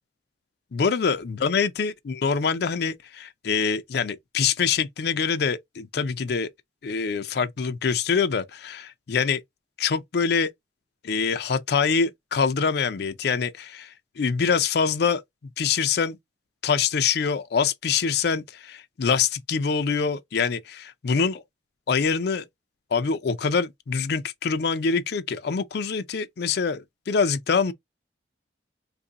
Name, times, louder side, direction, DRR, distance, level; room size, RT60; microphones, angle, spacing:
voice 1, 0.7-6.5 6.8-9.4 9.8-10.5 11.0-15.2 15.6-16.2 16.6-21.4 21.9-22.5 22.9-27.7, left 5 dB, 60° left, 0.4 m, -25 dB
2.6 x 2.6 x 3.8 m
head